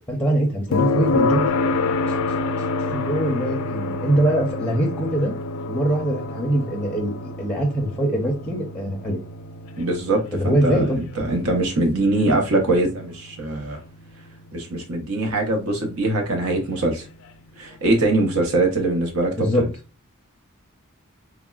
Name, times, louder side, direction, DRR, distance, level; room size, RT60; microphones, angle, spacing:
voice 1, 0.1-1.5 2.9-5.3 5.7-9.2 10.3-11.0 19.4-19.7, right 1 dB, 5° left, 0.5 m, -22 dB
sound 1, 0.7-14.6 16.8-16.9, left 3 dB, 70° left, 0.4 m, -28 dB
voice 2, 9.8-13.8 14.5-17.0 17.6-19.7, right 2 dB, 80° right, 0.8 m, -22 dB
3.5 x 2.0 x 2.3 m
head